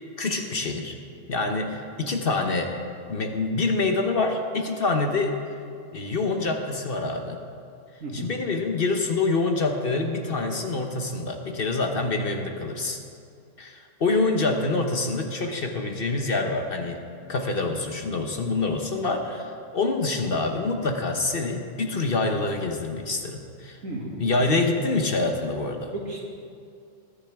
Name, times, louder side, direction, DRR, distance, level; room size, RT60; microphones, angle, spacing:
voice 1, 0.2-1.0 1.3-2.7 3.1-5.4 5.9-7.4 8.1-13.0 13.6-17.0 17.3-23.8 24.2-25.9, left 3 dB, 50° left, 4 dB, 1.0 m, -26 dB
voice 2, 23.8-24.1 25.9-26.2, right 2 dB, 80° right, -3 dB, 2.7 m, -33 dB
19.5 x 10.5 x 3.5 m, 2.4 s
omnidirectional pair, 1.4 m